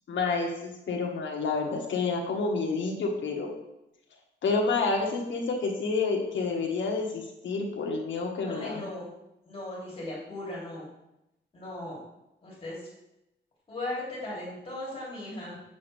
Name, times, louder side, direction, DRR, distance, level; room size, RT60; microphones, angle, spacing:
voice 1, 0.1-3.5 4.4-8.9, left 4 dB, 85° left, 1 dB, 1.5 m, -29 dB
voice 2, 8.4-9.1 9.5-10.9 11.5-12.0 12.4-12.8 13.7-15.6, left 1 dB, 30° left, -6 dB, 2.8 m, -37 dB
8.4 x 6.4 x 3.3 m, 0.88 s
wide cardioid pair, 180°, 19 cm